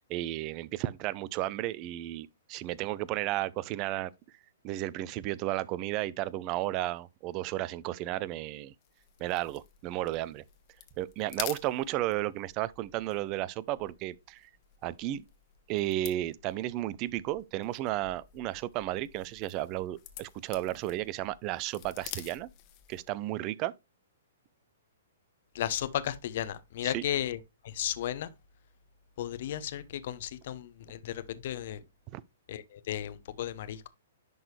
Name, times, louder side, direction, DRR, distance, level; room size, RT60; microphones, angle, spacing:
voice 1, 0.1-4.1 4.6-8.7 9.2-10.4 11.0-14.5 14.8-15.3 15.7-22.5 22.9-23.7 26.8-27.0 32.1-32.2, right 15 dB, 35° right, 0.5 m, -33 dB
sound 1, 8.8-23.2, left 13 dB, 35° left, 1.2 m, -48 dB
voice 2, 25.5-27.4 27.6-28.3 29.2-31.8 32.5-33.9, left 11 dB, 55° left, 0.8 m, -34 dB
10.5 x 4.0 x 3.2 m
figure-of-eight pair, 120°, 0 cm